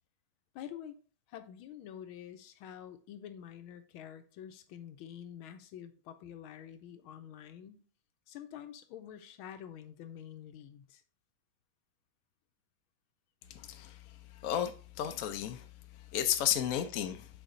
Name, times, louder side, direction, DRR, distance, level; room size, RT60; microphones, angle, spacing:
voice 1, 0.5-0.9 1.3-7.8 8.3-11.0, left 9 dB, 90° left, 1.6 m, -47 dB
voice 2, 13.5-14.0 14.3-15.6 16.1-17.3, left 11 dB, 65° left, 0.8 m, -33 dB
7.3 x 4.2 x 3.8 m
omnidirectional pair, 2.2 m